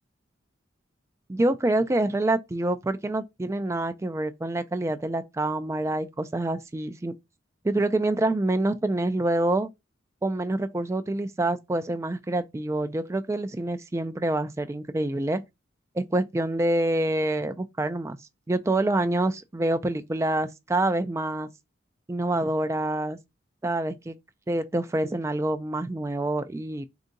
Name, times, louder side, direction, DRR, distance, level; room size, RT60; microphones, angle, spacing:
voice 1, 1.3-7.1 7.6-9.7 10.2-15.4 16.0-18.2 18.5-21.5 22.1-23.2 23.6-24.2 24.5-26.9, right 2 dB, 15° right, 0.3 m, -26 dB
3.9 x 2.7 x 3.7 m
head